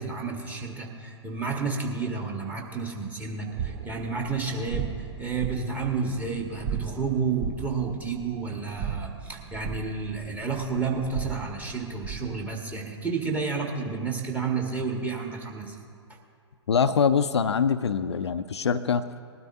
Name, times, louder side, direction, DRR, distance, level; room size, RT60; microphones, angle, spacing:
voice 1, 0.0-15.7, right 4 dB, 10° right, 0 dB, 1.4 m, -31 dB
sound 1, 3.5-12.4, right 7 dB, 35° right, 0.9 m, -37 dB
voice 2, 16.7-19.0, left 6 dB, 65° left, 11 dB, 0.5 m, -24 dB
19.5 x 12.5 x 2.7 m, 2.3 s
figure-of-eight pair, 110°, 15 cm